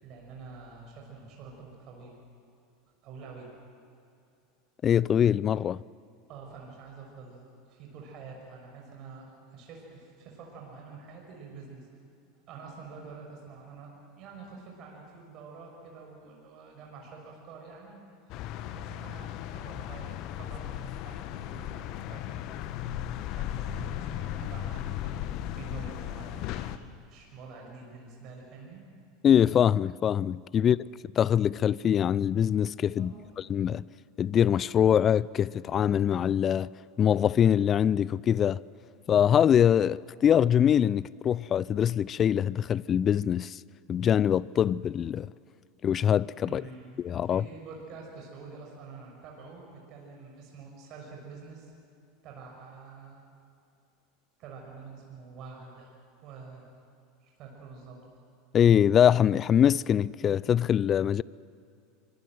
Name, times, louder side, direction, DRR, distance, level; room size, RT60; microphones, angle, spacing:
voice 1, 0.0-2.2 3.0-3.5 6.3-11.9 12.5-18.0 18.2-18.3 18.6-22.4 23.3-26.7 27.1-28.9 30.6-30.8 33.0-33.4 46.4-51.7 52.2-53.2 54.4-55.9 56.2-56.6 57.2-58.0, right 4 dB, 50° right, 6.1 m, -47 dB
voice 2, 4.8-5.8 29.2-30.8 31.2-33.1 33.5-33.8 34.2-36.7 37.0-38.6 39.1-43.6 43.9-45.3 45.8-46.6 47.0-47.4 58.5-61.2, left 9 dB, 35° left, 0.5 m, -23 dB
sound 1, 18.3-26.8, left 12 dB, 50° left, 1.2 m, -36 dB
25.0 x 23.0 x 7.8 m
hypercardioid pair, 85°, 0 cm